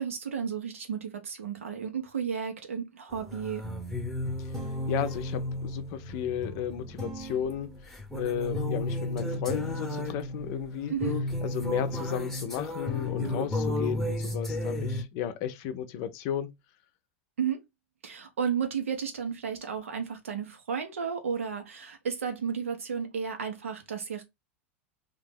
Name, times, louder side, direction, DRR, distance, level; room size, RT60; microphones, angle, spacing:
voice 1, 0.0-3.6 10.9-11.2 17.4-17.6 18.0-24.2, right 7 dB, 80° right, 0.9 m, -33 dB
sound 1, 3.1-15.0, left 1 dB, 5° left, 0.9 m, -33 dB
voice 2, 4.9-7.7 8.1-10.9 11.4-16.5, left 9 dB, 50° left, 0.6 m, -34 dB
2.8 x 2.5 x 3.7 m
hypercardioid pair, 90°, 7 cm